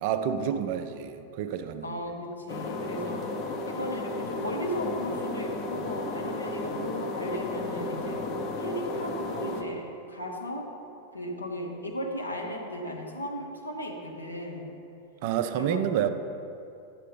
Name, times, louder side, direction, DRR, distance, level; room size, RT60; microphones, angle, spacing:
voice 1, 0.0-1.9 15.2-16.1, right 9 dB, 50° right, 9 dB, 0.4 m, -29 dB
voice 2, 1.8-3.3 3.7-8.2 8.6-10.7 11.1-14.7 15.5-15.9, equal, 80° left, 0 dB, 1.0 m, -36 dB
sound 1, 2.5-9.6, left 2 dB, 40° left, 0.7 m, -33 dB
10.5 x 7.5 x 3.3 m, 2.7 s
figure-of-eight pair, 90°, 0 cm